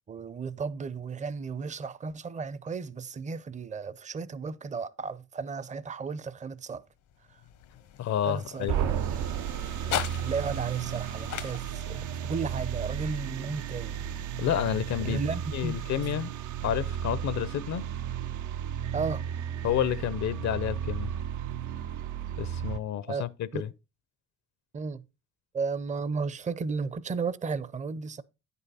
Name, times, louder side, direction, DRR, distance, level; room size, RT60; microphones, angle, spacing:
voice 1, 0.0-6.8 8.3-9.2 10.2-14.0 15.0-15.8 18.9-19.3 23.1-23.3 23.5-23.7 24.7-25.0 25.5-28.2, right 4 dB, 25° right, 0.5 m, -34 dB
sound 1, 6.9-15.2, left 11 dB, 80° left, 1.0 m, -41 dB
voice 2, 8.0-8.9 14.4-15.2 15.5-16.3 16.6-17.9 19.6-21.1 22.4-23.7, left 10 dB, 65° left, 0.6 m, -30 dB
sound 2, 8.7-22.8, right 9 dB, 75° right, 0.6 m, -34 dB
9.7 x 5.5 x 4.1 m
cardioid pair, 90°, 30 cm